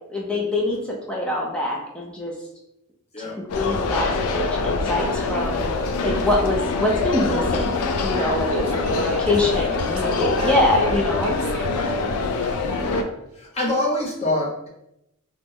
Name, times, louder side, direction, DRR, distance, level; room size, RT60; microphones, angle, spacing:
voice 1, 0.1-2.3 3.2-5.6 6.0-8.6 8.9-11.3, left 1 dB, 5° left, -2 dB, 0.4 m, -24 dB
sound 1, 3.5-13.0, left 3 dB, 85° left, 0.3 m, -24 dB
voice 2, 8.5-13.0, right 1 dB, 85° right, 3 dB, 0.5 m, -33 dB
voice 3, 13.3-14.7, left 1 dB, 30° left, -3 dB, 0.7 m, -26 dB
2.9 x 2.0 x 3.5 m, 0.83 s
head